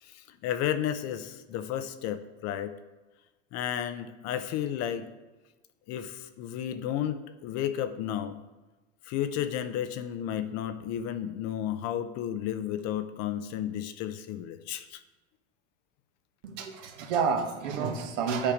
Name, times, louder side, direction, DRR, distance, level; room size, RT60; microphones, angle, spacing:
voice 1, 0.0-2.8 3.5-5.1 5.9-8.4 9.0-15.0, left 10 dB, 45° left, 11 dB, 0.7 m, -32 dB
voice 2, 16.4-18.5, right 6 dB, 70° right, 4 dB, 1.4 m, -29 dB
8.8 x 4.7 x 5.0 m, 1.2 s
hypercardioid pair, 105°, 37 cm